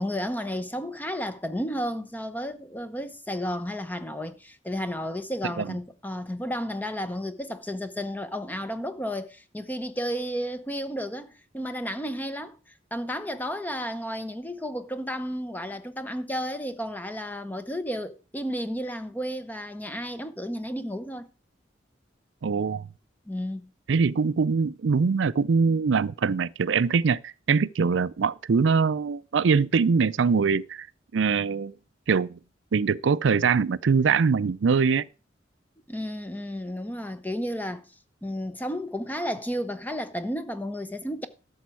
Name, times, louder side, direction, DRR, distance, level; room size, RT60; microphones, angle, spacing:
voice 1, 0.0-12.6 12.9-21.3 23.3-23.7 35.9-37.9 38.2-41.3, equal, 10° left, 0.9 m, -32 dB
voice 2, 22.4-22.9 23.9-30.9 31.1-31.7 32.1-32.4 32.7-35.1, right 5 dB, 80° right, 0.4 m, -23 dB
12.5 x 7.2 x 4.6 m
head